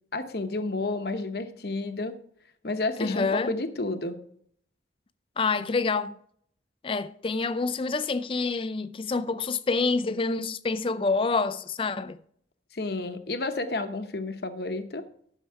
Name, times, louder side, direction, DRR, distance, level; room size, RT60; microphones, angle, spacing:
voice 1, 0.1-2.2 2.6-4.2 12.7-15.0, left 2 dB, 55° left, 0.9 m, -31 dB
voice 2, 3.0-3.5 5.4-6.1 6.8-12.2, left 4 dB, 30° left, 0.4 m, -27 dB
12.0 x 6.6 x 4.6 m
head